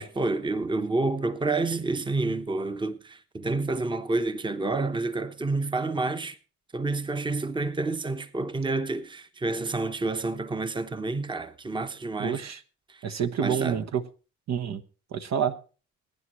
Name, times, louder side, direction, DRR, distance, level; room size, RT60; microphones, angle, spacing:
voice 1, 0.0-6.4 6.7-12.4 12.9-13.0 13.4-13.8, right 3 dB, 15° right, 0.9 m, -29 dB
voice 2, 12.2-12.6 13.0-14.0 14.5-14.8 15.1-15.5, right 8 dB, 60° right, 1.1 m, -28 dB
22.0 x 9.8 x 3.1 m
cardioid pair, 90°, 30 cm